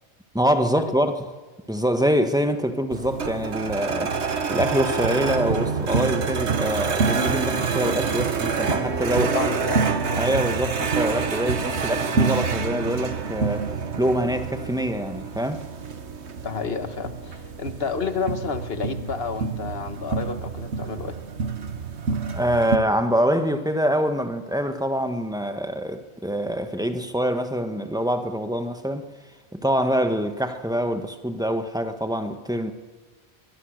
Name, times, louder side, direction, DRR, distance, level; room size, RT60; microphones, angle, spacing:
voice 1, 0.3-1.3 1.7-4.2 4.5-9.3 10.2-13.7 14.0-15.6 22.3-29.1 29.5-32.7, equal, 5° right, 1.4 m, -25 dB
sound 1, 2.9-22.8, right 5 dB, 85° right, 1.6 m, -27 dB
voice 2, 9.1-10.2 16.4-21.2, left 5 dB, 60° left, 1.7 m, -30 dB
23.0 x 22.5 x 6.6 m
omnidirectional pair, 1.1 m